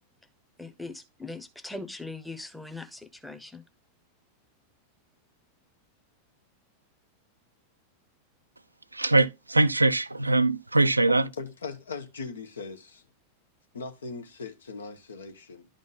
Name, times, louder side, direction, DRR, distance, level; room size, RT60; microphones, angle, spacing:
voice 1, 0.6-3.6, left 2 dB, 5° left, 0.8 m, -40 dB
voice 2, 8.9-11.2, right 2 dB, 85° right, 0.3 m, -22 dB
voice 3, 11.4-13.0 13.7-15.7, left 4 dB, 70° left, 0.9 m, -39 dB
11.0 x 3.8 x 3.9 m
figure-of-eight pair, 90°, 0 cm